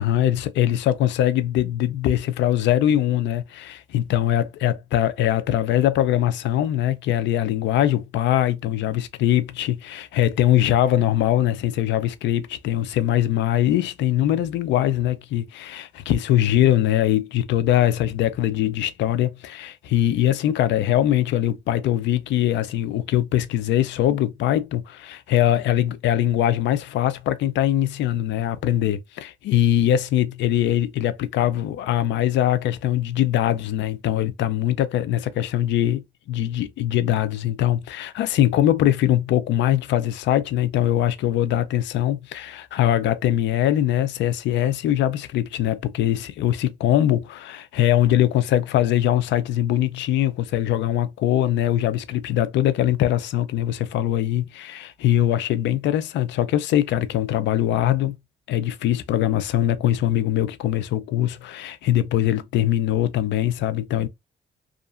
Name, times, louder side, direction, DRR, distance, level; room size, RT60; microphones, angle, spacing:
voice 1, 0.0-58.2 58.5-64.1, left 12 dB, 80° left, 0.4 m, -22 dB
2.7 x 2.4 x 2.4 m
cardioid pair, 75°, 18 cm